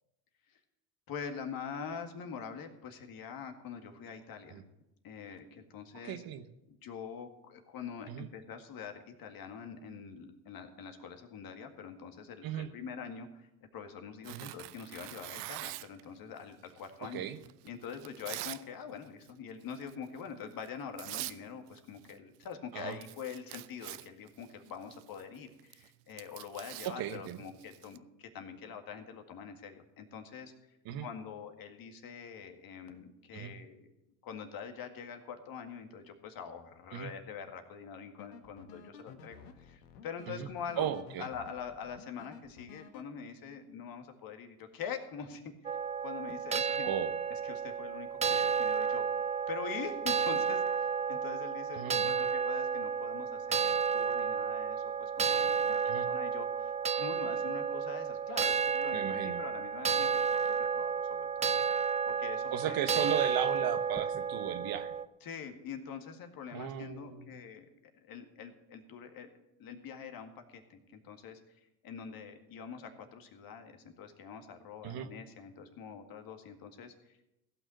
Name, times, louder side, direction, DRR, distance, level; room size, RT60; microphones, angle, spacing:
voice 1, 1.1-4.6 5.0-6.2 6.7-17.3 17.6-30.5 31.0-33.9 34.2-40.9 41.2-45.8 46.0-46.9 47.3-49.1 49.5-55.8 56.1-62.8 65.2-67.7 67.9-69.3 69.6-71.4 71.8-77.3, left 7 dB, 45° left, 5 dB, 2.0 m, -45 dB
voice 2, 6.0-6.4 8.1-8.3 12.4-12.7 14.3-14.5 17.0-17.4 22.7-23.0 26.8-27.4 30.8-31.1 33.3-33.5 36.9-37.1 40.4-40.5 40.8-41.2 46.8-47.1 51.7-52.1 55.8-56.1 58.9-59.4 62.1-62.2 62.5-64.9 66.5-67.3 74.8-75.1, right 10 dB, 50° right, 10 dB, 1.1 m, -36 dB
Tearing, 14.2-16.0 16.8-18.6 19.0-19.3 19.7-20.0 20.6-20.7 21.0-21.4 21.7-22.2 22.4-22.5 22.8-28.0, right 20 dB, 70° right, 0.6 m, -44 dB
sound 1, 38.2-43.0, left 6 dB, 85° left, 1.4 m, -53 dB
sound 2, 45.6-65.0, right 6 dB, 15° right, 0.4 m, -32 dB
16.0 x 6.1 x 7.9 m, 0.91 s
hypercardioid pair, 85°, 48 cm